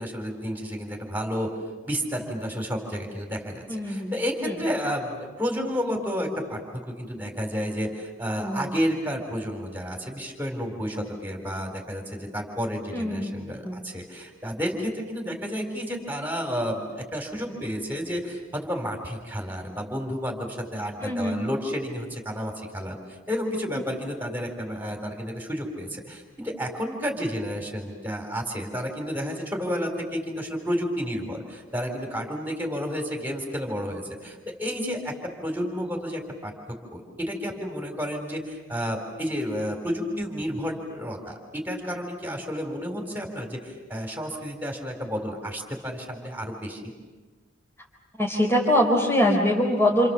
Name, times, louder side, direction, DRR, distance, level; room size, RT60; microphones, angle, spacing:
voice 1, 0.0-1.5 1.9-23.0 23.3-36.5 36.9-46.8, equal, 10° right, 3 dB, 4.1 m, -31 dB
voice 2, 3.7-4.1 4.4-4.5 8.4-8.7 12.9-13.4 13.6-13.8 21.0-21.4 48.2-50.1, left 1 dB, 15° left, -3 dB, 3.9 m, -23 dB
29.0 x 28.5 x 7.2 m, 1.3 s
head